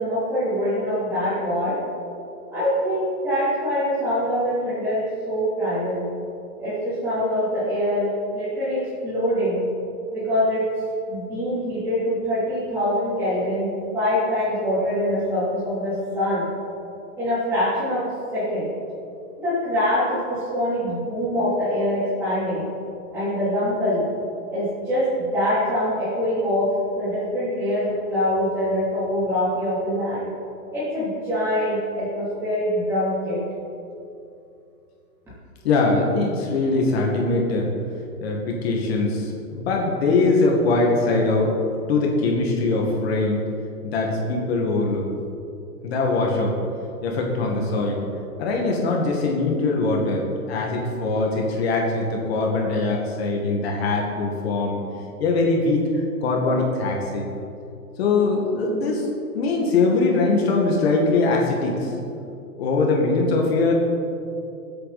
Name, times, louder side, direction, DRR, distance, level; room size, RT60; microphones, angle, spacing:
voice 1, 0.0-1.8 2.5-6.0 6.6-9.6 10.1-10.6 11.1-16.4 17.2-18.7 19.4-22.7 23.1-24.1 24.5-30.3 30.7-33.4, equal, 5° right, -15 dB, 3.3 m, -24 dB
voice 2, 35.6-37.7 38.2-41.5 41.9-43.4 43.8-45.1 45.8-46.5 47.0-48.0 48.4-50.2 50.5-54.8 55.2-55.9 56.2-57.3 58.0-59.1 59.3-61.9 62.6-63.7, left 3 dB, 40° left, -1 dB, 2.0 m, -22 dB
21.5 x 8.5 x 4.2 m, 2.7 s
hypercardioid pair, 170°, 46 cm